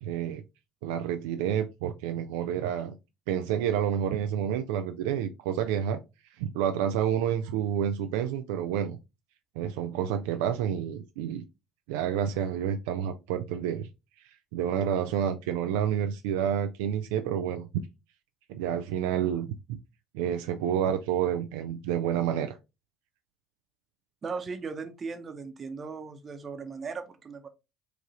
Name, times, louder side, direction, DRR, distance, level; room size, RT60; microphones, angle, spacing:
voice 1, 0.0-0.4 0.8-3.0 3.3-6.0 6.4-9.0 9.6-11.4 11.9-13.9 14.5-17.7 18.5-19.8 20.1-22.6, right 9 dB, 80° right, 0.3 m, -29 dB
voice 2, 24.2-27.5, right 4 dB, 40° right, 0.8 m, -37 dB
4.8 x 2.5 x 3.0 m
hypercardioid pair, 65°, 0 cm